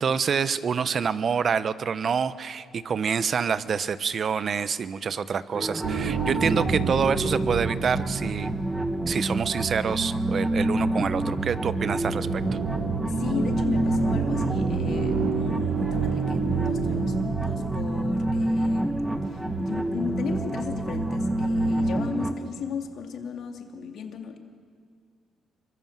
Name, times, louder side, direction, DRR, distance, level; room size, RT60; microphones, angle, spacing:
voice 1, 0.0-8.5 9.1-12.4, right 6 dB, 50° right, 15 dB, 1.0 m, -27 dB
sound 1, 5.5-22.3, right 1 dB, 10° right, 1.5 m, -28 dB
sound 2, 5.8-22.1, right 5 dB, 85° right, 2.8 m, -30 dB
voice 2, 13.0-24.4, left 6 dB, 70° left, 4 dB, 2.8 m, -36 dB
27.0 x 24.0 x 7.5 m, 2.3 s
cardioid pair, 90°, 0 cm